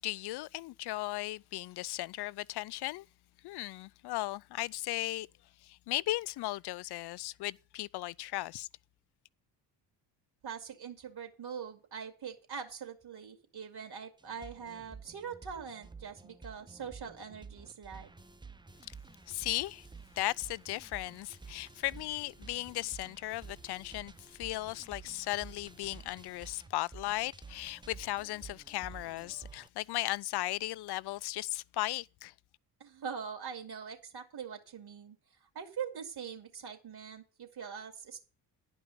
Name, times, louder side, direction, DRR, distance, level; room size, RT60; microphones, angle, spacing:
voice 1, 0.0-3.1 3.4-5.3 5.6-8.7 19.3-19.9 20.2-32.3, left 17 dB, 55° left, 0.5 m, -36 dB
voice 2, 10.4-18.1 32.8-35.2 35.5-38.2, right 7 dB, 50° right, 2.9 m, -43 dB
sound 1, 14.2-29.7, right 4 dB, 10° right, 0.7 m, -51 dB
11.0 x 5.4 x 8.4 m
hypercardioid pair, 55°, 48 cm